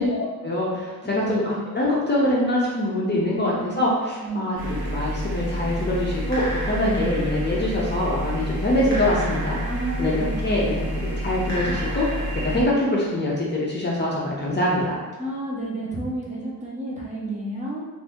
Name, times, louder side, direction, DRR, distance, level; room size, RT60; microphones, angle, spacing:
voice 1, 0.0-9.6 10.0-12.1 12.4-15.0, left 1 dB, 30° left, -5 dB, 0.5 m, -24 dB
voice 2, 3.0-3.8 4.2-4.6 6.8-7.1 9.6-10.8 15.2-17.8, right 2 dB, 20° right, -6 dB, 0.7 m, -31 dB
sound 1, 4.6-12.6, equal, 70° right, 1.0 m, -28 dB
2.7 x 2.5 x 3.5 m, 1.2 s
wide cardioid pair, 140°, 37 cm